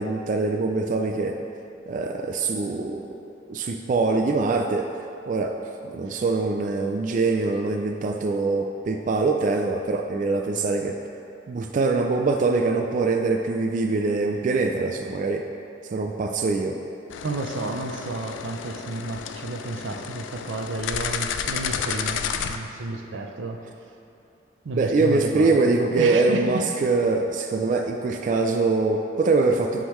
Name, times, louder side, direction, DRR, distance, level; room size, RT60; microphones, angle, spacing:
voice 1, 0.0-1.4 1.9-3.2 3.5-5.0 5.3-5.6 5.8-11.0 11.5-15.5 15.9-16.8 24.8-29.8, right 3 dB, 45° right, 3 dB, 0.3 m, -23 dB
sound 1, 17.1-22.6, left 7 dB, 85° left, 0.3 m, -31 dB
voice 2, 17.2-23.6 24.6-26.7, right 2 dB, 90° right, 3 dB, 0.6 m, -31 dB
9.9 x 3.7 x 3.1 m, 2.7 s
head